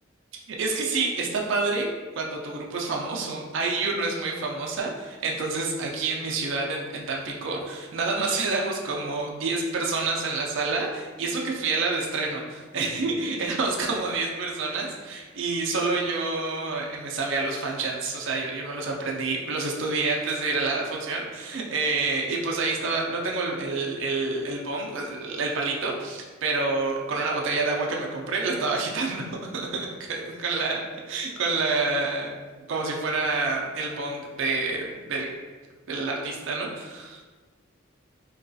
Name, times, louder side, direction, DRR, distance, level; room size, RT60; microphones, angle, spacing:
voice 1, 0.5-32.3 32.7-35.3 35.9-37.2, right 3 dB, 65° right, -1 dB, 0.4 m, -28 dB
3.8 x 2.3 x 2.6 m, 1.4 s
head